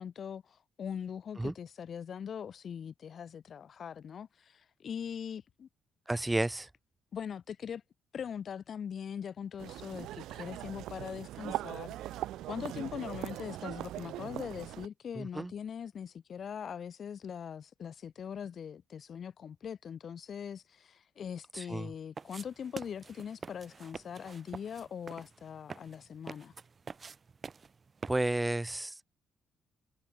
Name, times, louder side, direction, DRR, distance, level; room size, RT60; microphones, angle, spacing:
voice 1, 0.0-5.7 7.1-7.8 8.1-12.2 12.5-26.5, left 7 dB, 50° left, 0.7 m, -41 dB
voice 2, 6.1-6.7 15.2-15.5 21.5-21.9 28.1-29.0, right 2 dB, 15° right, 0.6 m, -32 dB
sound 1, 9.6-14.9, right 14 dB, 65° right, 0.4 m, -40 dB
sound 2, 22.2-28.5, right 5 dB, 35° right, 5.1 m, -47 dB
figure-of-eight pair, 45°, 0 cm